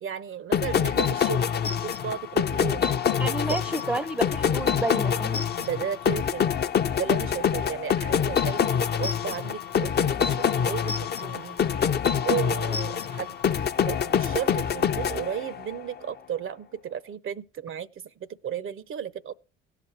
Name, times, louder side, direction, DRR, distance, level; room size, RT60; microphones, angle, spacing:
voice 1, 0.0-2.9 3.5-3.6 5.6-6.6 7.0-8.7 9.0-11.8 12.2-13.3 13.9-19.3, right 8 dB, 45° right, 0.6 m, -34 dB
sound 1, 0.5-15.8, left 7 dB, 35° left, 0.6 m, -25 dB
voice 2, 3.2-5.5, right 2 dB, 5° right, 0.6 m, -30 dB
17.5 x 5.9 x 4.4 m
hypercardioid pair, 50°, 29 cm